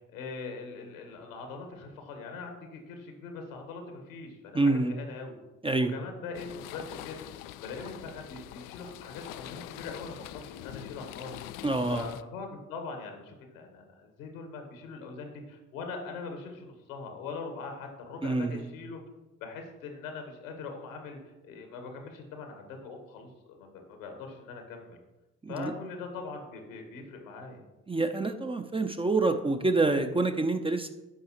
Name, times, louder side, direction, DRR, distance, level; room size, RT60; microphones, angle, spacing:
voice 1, 0.1-5.3 5.8-7.2 7.6-11.4 11.9-19.0 19.4-23.3 23.6-25.0 25.5-27.6, left 4 dB, 75° left, 4 dB, 1.5 m, -42 dB
voice 2, 4.5-4.9 5.6-5.9 11.6-12.1 18.2-18.7 25.4-25.7 27.9-30.9, right 2 dB, 15° right, 7 dB, 0.6 m, -27 dB
sound 1, 6.3-12.2, left 14 dB, 50° left, 0.5 m, -44 dB
13.5 x 5.5 x 3.0 m, 1.0 s
figure-of-eight pair, 45°, 41 cm